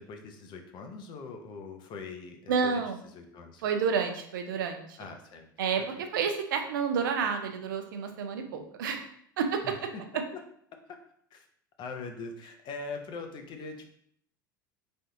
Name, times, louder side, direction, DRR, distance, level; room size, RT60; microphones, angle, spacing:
voice 1, 0.0-2.8 3.1-3.6 5.0-5.5 9.6-10.0 10.3-10.4 10.9-11.0 11.3-11.5 11.8-13.9, left 4 dB, 45° left, 5 dB, 0.6 m, -42 dB
voice 2, 2.5-3.0 3.6-5.0 5.6-9.0 9.4-9.7, right 6 dB, 75° right, 5 dB, 0.5 m, -30 dB
3.3 x 2.6 x 2.6 m, 0.66 s
hypercardioid pair, 80°, 11 cm